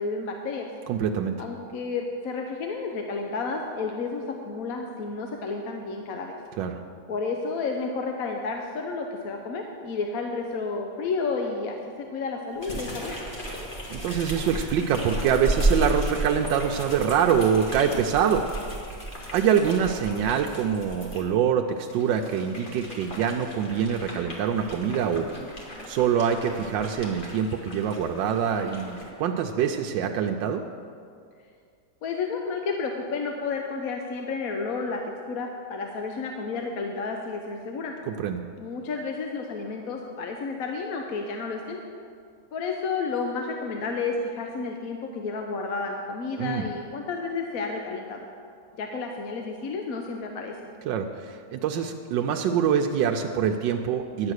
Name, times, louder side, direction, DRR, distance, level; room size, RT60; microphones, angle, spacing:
voice 1, 0.0-0.7 1.4-6.4 7.1-13.1 32.0-35.0 35.3-37.9 38.6-41.8 42.5-48.3 48.8-50.6, left 4 dB, 60° left, 2 dB, 1.1 m, -31 dB
voice 2, 0.9-1.4 6.6-6.8 13.9-18.4 19.3-25.3 25.9-30.6 38.1-38.4 46.4-46.7 50.8-54.3, right 7 dB, 90° right, 3 dB, 1.3 m, -25 dB
sound 1, 12.6-21.2 21.8-29.1, right 1 dB, 30° left, 1.7 m, -34 dB
10.5 x 8.3 x 6.4 m, 2.3 s
omnidirectional pair, 2.0 m